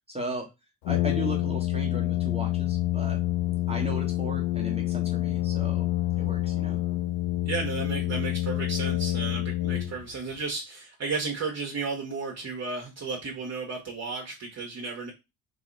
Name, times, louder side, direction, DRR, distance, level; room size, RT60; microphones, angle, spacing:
voice 1, 0.1-0.5 0.9-3.2 3.7-5.9 6.2-6.8, right 2 dB, 15° right, -1 dB, 1.3 m, -36 dB
Brass instrument, 0.8-10.3, left 15 dB, 80° left, 0.6 m, -27 dB
voice 2, 7.4-15.1, right 4 dB, 35° right, -1 dB, 1.2 m, -33 dB
3.2 x 2.7 x 4.0 m, 0.24 s
hypercardioid pair, 60°, 43 cm